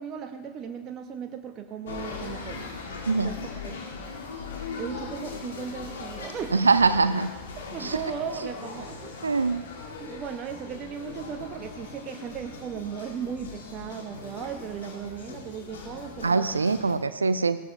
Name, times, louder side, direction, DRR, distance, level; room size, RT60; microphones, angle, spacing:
voice 1, 0.0-2.7 3.2-3.4 3.6-3.8 4.8-6.7 7.7-9.4 10.0-16.5, right 7 dB, 30° right, 5 dB, 1.0 m, -37 dB
sound 1, 1.9-17.0, left 4 dB, 60° left, 1.9 m, -39 dB
voice 2, 6.5-7.3 7.8-8.0 9.2-9.6 16.2-17.6, right 4 dB, 75° right, 14 dB, 0.5 m, -23 dB
17.0 x 12.5 x 3.3 m, 1.2 s
figure-of-eight pair, 90°, 0 cm